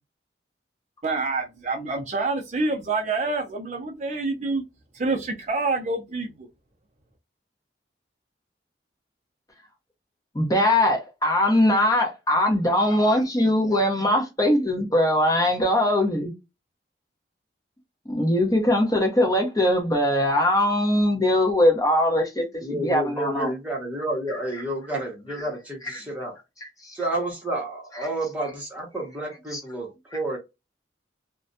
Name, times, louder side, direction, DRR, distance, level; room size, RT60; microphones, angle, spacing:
voice 1, 1.0-4.6 4.9-6.5, right 3 dB, 40° right, 0.4 m, -27 dB
voice 2, 10.3-16.3 18.1-23.5 25.9-26.0 26.8-26.9 29.5-29.6, left 1 dB, 20° left, 0.7 m, -21 dB
voice 3, 22.6-26.4 26.9-30.4, right 1 dB, 10° right, 0.9 m, -30 dB
2.4 x 2.1 x 2.5 m
head